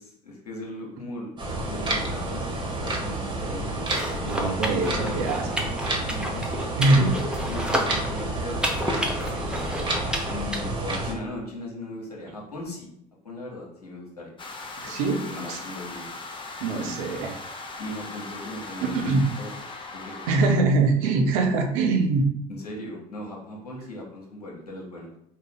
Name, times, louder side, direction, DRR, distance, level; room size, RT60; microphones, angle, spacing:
voice 1, 0.0-1.3 1.7-3.9 4.9-5.2 6.0-7.1 7.4-9.2 10.3-12.9 13.2-14.3 14.9-16.1 16.8-17.0 17.8-19.1 19.4-20.6 22.5-25.1, left 1 dB, 90° left, -2 dB, 1.0 m, -38 dB
sound 1, 1.4-11.1, right 2 dB, 25° right, 1.2 m, -30 dB
sound 2, 3.8-10.6, equal, 5° right, 0.8 m, -31 dB
voice 2, 4.2-5.7 6.8-7.1 14.8-15.1 15.5-15.6 16.6-17.3 18.8-19.2 20.3-22.3, right 3 dB, 65° right, 3 dB, 0.8 m, -23 dB
sound 3, 14.4-20.5, left 3 dB, 25° left, 0.8 m, -39 dB
4.2 x 2.4 x 3.9 m, 0.75 s
figure-of-eight pair, 60°, 19 cm